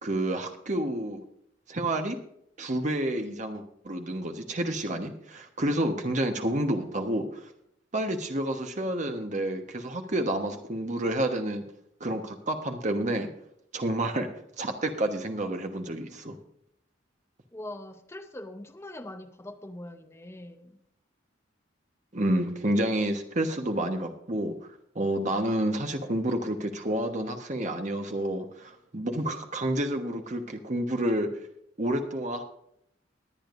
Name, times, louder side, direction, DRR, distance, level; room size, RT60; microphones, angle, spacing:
voice 1, 0.0-1.2 1.7-2.2 2.6-7.4 7.9-11.6 12.0-13.3 13.7-14.3 14.6-16.3 22.1-24.6 24.9-31.3 31.8-32.4, right 1 dB, 40° right, 5 dB, 1.2 m, -29 dB
voice 2, 17.5-20.8, left 1 dB, 15° left, 6 dB, 0.7 m, -42 dB
21.0 x 8.9 x 2.6 m, 0.72 s
head